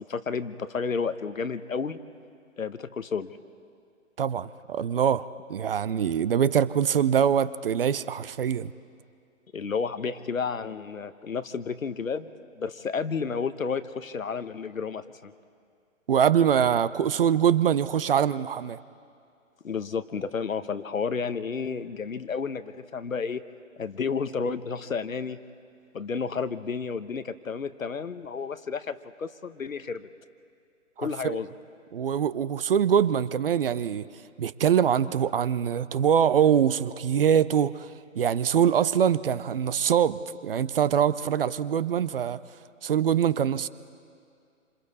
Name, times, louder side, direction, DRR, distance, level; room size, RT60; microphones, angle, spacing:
voice 1, 0.0-2.0 2.6-3.4 9.5-15.3 19.6-23.4 23.8-25.4 25.9-30.1 31.0-31.5, left 5 dB, 85° left, 12 dB, 1.0 m, -31 dB
voice 2, 4.2-8.7 16.1-18.8 31.0-31.4 31.9-34.1 34.4-42.4 42.8-43.7, right 8 dB, 45° right, 17 dB, 0.6 m, -24 dB
27.5 x 26.5 x 4.2 m, 2.3 s
figure-of-eight pair, 140°, 40 cm